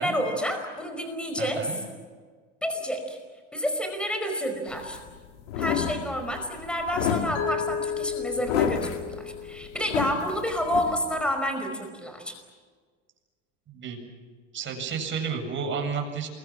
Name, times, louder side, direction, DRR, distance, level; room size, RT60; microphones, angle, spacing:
voice 1, 0.0-1.6 2.6-3.2 3.5-5.0 5.6-12.3, equal, 5° left, 5 dB, 5.1 m, -29 dB
voice 2, 1.4-1.8 13.7-14.1 14.5-16.3, right 6 dB, 30° right, 3 dB, 7.6 m, -31 dB
sound 1, 4.7-11.3, left 8 dB, 80° left, 2.8 m, -31 dB
Mallet percussion, 7.3-10.2, left 8 dB, 55° left, 3.2 m, -33 dB
28.0 x 23.0 x 7.4 m, 1.5 s
supercardioid pair, 120°, 36 cm